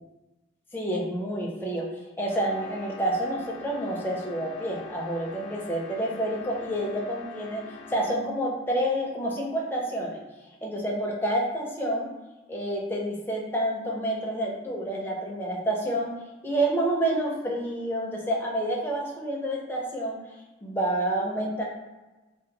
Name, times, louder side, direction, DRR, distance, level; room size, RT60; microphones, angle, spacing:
voice 1, 0.7-1.9 2.2-7.6 7.9-10.2 10.6-12.1 12.5-16.1 16.4-20.2 20.6-21.6, right 1 dB, 10° left, -2 dB, 0.5 m, -28 dB
sound 1, 2.3-8.4, left 4 dB, 75° left, 0.4 m, -45 dB
2.6 x 2.4 x 3.9 m, 1.2 s
head